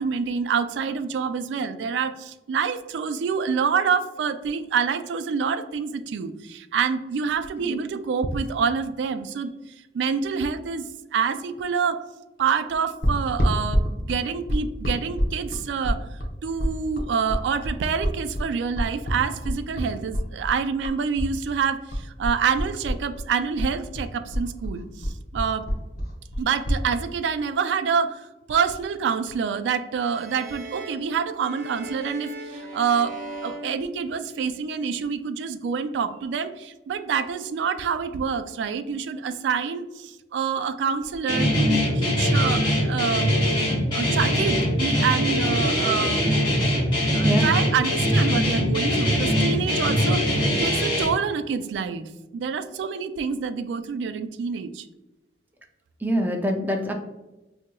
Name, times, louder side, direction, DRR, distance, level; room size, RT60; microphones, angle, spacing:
voice 1, 0.0-9.5 9.9-10.8 11.1-12.0 12.4-25.7 26.4-43.4 43.9-46.3 47.1-54.9, right 6 dB, 85° right, 11 dB, 0.3 m, -27 dB
sound 1, 13.0-21.3 21.6-23.3 23.6-26.8, equal, 55° left, 0.7 m, -26 dB
sound 2, 30.0-34.6, right 1 dB, 45° right, 0.7 m, -39 dB
Guitar, 41.3-51.1, equal, 25° left, 1.2 m, -22 dB
voice 2, 56.0-56.9, equal, 10° right, 3 dB, 0.4 m, -25 dB
4.2 x 2.8 x 2.2 m, 1.0 s
head